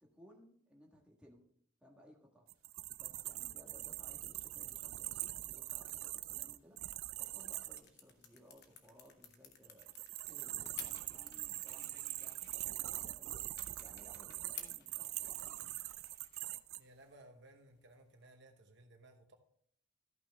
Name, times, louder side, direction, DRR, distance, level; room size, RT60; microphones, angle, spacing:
voice 1, 0.0-1.4 1.8-2.5 3.0-6.8 7.2-9.9 10.3-13.4 13.8-15.9, equal, 5° right, -1 dB, 1.4 m, -62 dB
sound 1, 2.5-7.8 9.6-16.8, right 16 dB, 70° right, 0.4 m, -43 dB
sound 2, 6.7-18.3, left 7 dB, 50° left, 1.1 m, -56 dB
voice 2, 16.8-19.3, right 1 dB, 55° right, 4 dB, 1.0 m, -60 dB
13.5 x 5.9 x 3.5 m, 0.64 s
head